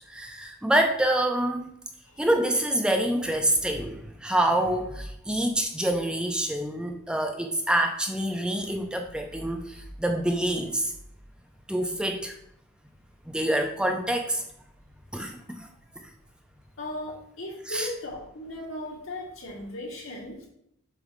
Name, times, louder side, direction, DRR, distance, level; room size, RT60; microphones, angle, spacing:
voice 1, 0.1-1.7 2.2-10.9 11.7-12.4 13.3-14.4 15.1-15.7 16.0-16.1 17.7-17.9, right 1 dB, 5° right, 3 dB, 0.4 m, -26 dB
voice 2, 16.8-20.5, left 1 dB, 75° left, -3 dB, 2.2 m, -37 dB
7.1 x 3.1 x 5.0 m, 0.76 s
head